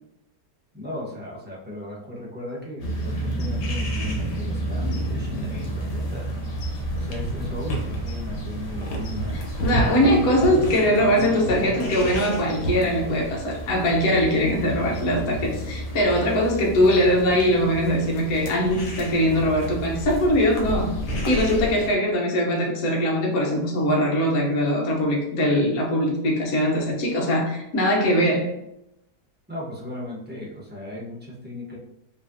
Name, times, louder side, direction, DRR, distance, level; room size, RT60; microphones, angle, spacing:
voice 1, 0.7-6.3 6.9-9.4 9.7-13.0 29.5-31.8, left 1 dB, 5° right, -6 dB, 0.9 m, -36 dB
sound 1, 2.8-22.0, right 1 dB, 80° left, 1.5 m, -30 dB
voice 2, 9.6-21.0 21.3-28.5, equal, 65° left, -2 dB, 1.4 m, -21 dB
5.1 x 3.3 x 2.7 m, 0.81 s
omnidirectional pair, 1.8 m